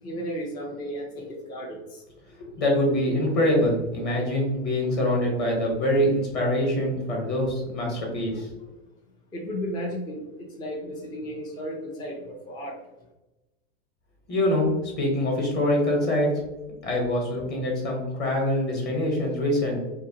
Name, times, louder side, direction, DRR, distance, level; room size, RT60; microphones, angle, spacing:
voice 1, 0.0-2.0 9.3-12.8, equal, 15° left, -2 dB, 0.3 m, -34 dB
voice 2, 2.4-8.6 14.3-16.3 16.8-19.8, left 1 dB, 30° left, -1 dB, 0.9 m, -24 dB
2.7 x 2.1 x 2.7 m, 1.0 s
supercardioid pair, 120°, 33 cm